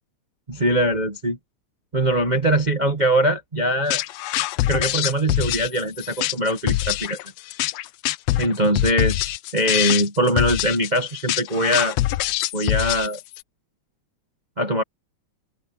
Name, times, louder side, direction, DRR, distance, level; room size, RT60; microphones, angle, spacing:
voice 1, 0.5-1.4 1.9-4.0 4.7-7.2 8.4-12.0 12.5-13.2 14.6-14.8, equal, 70° right, 0.4 m, -22 dB
sound 1, 3.9-13.4, left 16 dB, 80° left, 1.5 m, -24 dB
open air
omnidirectional pair, 3.4 m